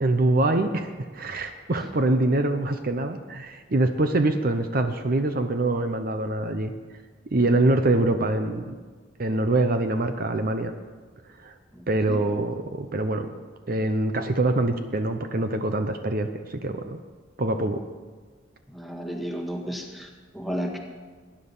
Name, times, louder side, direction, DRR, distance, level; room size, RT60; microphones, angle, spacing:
voice 1, 0.0-6.7 7.3-8.7 9.2-10.7 11.4-11.5 11.9-13.3 13.7-17.0 17.4-17.8, right 2 dB, 50° right, 7 dB, 0.8 m, -24 dB
voice 2, 11.7-12.2 18.7-20.8, equal, ahead, 1 dB, 1.7 m, -33 dB
19.5 x 10.0 x 5.5 m, 1.5 s
head